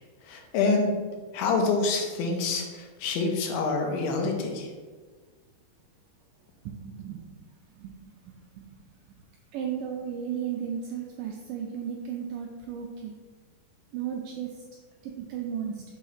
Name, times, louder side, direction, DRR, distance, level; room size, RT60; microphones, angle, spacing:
voice 1, 0.3-0.9 1.3-4.7, left 3 dB, 85° left, 2 dB, 2.6 m, -26 dB
voice 2, 6.7-8.7 9.5-13.2 13.9-14.6 15.0-15.8, right 8 dB, 85° right, 2 dB, 1.9 m, -35 dB
6.2 x 2.7 x 5.6 m, 1.4 s
omnidirectional pair, 4.3 m